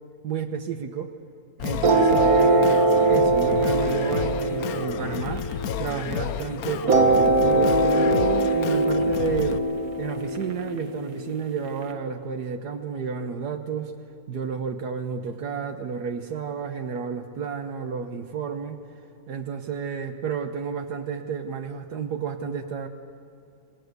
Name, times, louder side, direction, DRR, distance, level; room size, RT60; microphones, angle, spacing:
voice 1, 0.2-1.1 1.6-5.5 5.8-9.6 10.0-13.9 14.3-18.8 19.3-22.9, right 6 dB, 80° right, 6 dB, 1.7 m, -31 dB
Singing, 1.6-9.6, left 9 dB, 70° left, 1.2 m, -32 dB
sound 1, 1.8-6.2 6.9-11.8, right 2 dB, 65° right, 1.8 m, -22 dB
28.0 x 18.5 x 8.1 m, 2.8 s
omnidirectional pair, 1.7 m